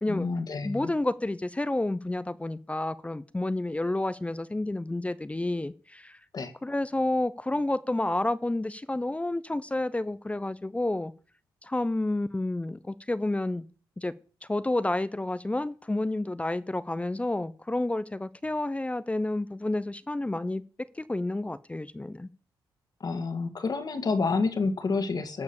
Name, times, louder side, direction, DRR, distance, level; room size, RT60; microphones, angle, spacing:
voice 1, 0.1-0.9 6.3-6.5 23.0-25.4, left 4 dB, 50° left, 1.9 m, -29 dB
voice 2, 0.6-6.2 6.6-11.1 11.6-13.6 14.0-14.1 14.5-20.6 21.0-22.3, left 2 dB, 15° left, 0.6 m, -30 dB
13.0 x 4.9 x 7.1 m
cardioid pair, 60°, 9 cm